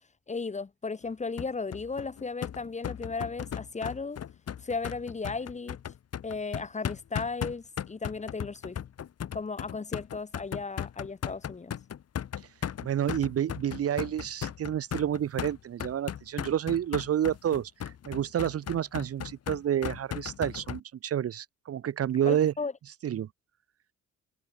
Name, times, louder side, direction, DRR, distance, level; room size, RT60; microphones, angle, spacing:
voice 1, 0.3-4.2 4.6-5.8 6.2-8.8 9.3-11.7 22.3-22.7, left 4 dB, 25° left, 1.2 m, -35 dB
sound 1, 1.4-20.8, left 9 dB, 55° left, 2.0 m, -37 dB
voice 2, 12.8-17.7 18.1-22.5 23.0-23.3, right 10 dB, 50° right, 0.9 m, -29 dB
cardioid pair, 90°, 30 cm